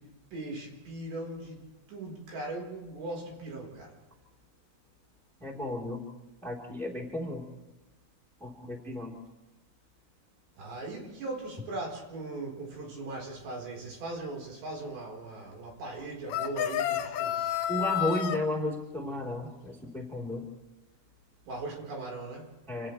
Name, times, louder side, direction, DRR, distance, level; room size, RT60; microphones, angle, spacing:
voice 1, 0.0-1.6 1.9-3.9 10.6-17.6 21.5-22.5, right 2 dB, 60° right, -1 dB, 6.5 m, -39 dB
voice 2, 5.4-6.0 6.4-7.4 8.4-9.2 17.7-20.4 22.7-22.9, left 1 dB, ahead, -2 dB, 3.0 m, -33 dB
sound 1, 16.3-18.4, left 11 dB, 70° left, 3.1 m, -30 dB
29.0 x 28.0 x 3.4 m, 1.1 s
omnidirectional pair, 5.6 m